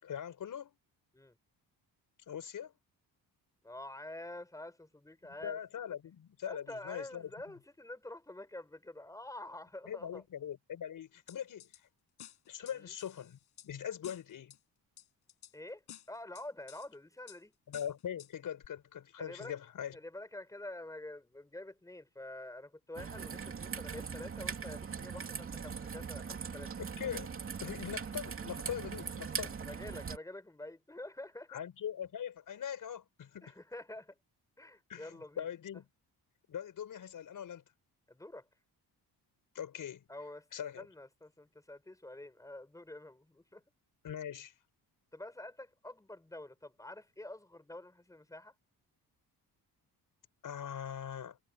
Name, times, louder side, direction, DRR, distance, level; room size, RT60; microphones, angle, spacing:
voice 1, 0.0-0.8 2.3-2.7 5.4-7.3 9.9-11.7 12.5-13.4 13.6-14.5 17.7-20.0 27.0-27.3 27.6-29.6 31.5-33.5 34.9-35.8 36.5-37.6 39.5-40.0 40.5-40.9 44.0-44.5 50.4-51.4, left 9 dB, 55° left, 6.2 m, -41 dB
voice 2, 3.6-5.6 6.5-10.2 12.7-12.9 15.5-15.8 16.1-17.5 19.2-19.5 19.9-26.7 29.4-31.6 33.4-34.2 34.6-35.5 38.1-38.5 40.1-40.5 40.8-43.6 45.1-48.5, left 1 dB, 10° left, 5.3 m, -47 dB
sound 1, 11.3-11.8 12.2-13.7 14.0-14.6 15.0-15.5 15.9-16.9 17.3-17.4 17.7-18.3 18.6-18.7, left 11 dB, 80° left, 6.6 m, -53 dB
Raindrop / Trickle dribble, 23.0-30.2, right 6 dB, 35° right, 3.1 m, -41 dB
wide cardioid pair, 180°, 39 cm